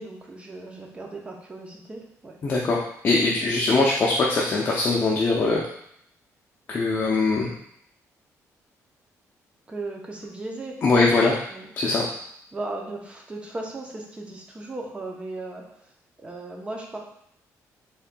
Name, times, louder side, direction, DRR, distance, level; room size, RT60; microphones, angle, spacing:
voice 1, 0.0-2.4 9.7-11.1 11.5-11.7 12.0-12.1 12.5-15.9 16.2-17.0, right 2 dB, 20° right, 1 dB, 0.6 m, -36 dB
voice 2, 2.4-2.8 3.0-5.6 6.7-7.5 10.8-11.3 11.8-12.0, left 3 dB, 35° left, -3 dB, 0.5 m, -21 dB
4.1 x 3.5 x 2.2 m, 0.71 s
cardioid pair, 135°, 6 cm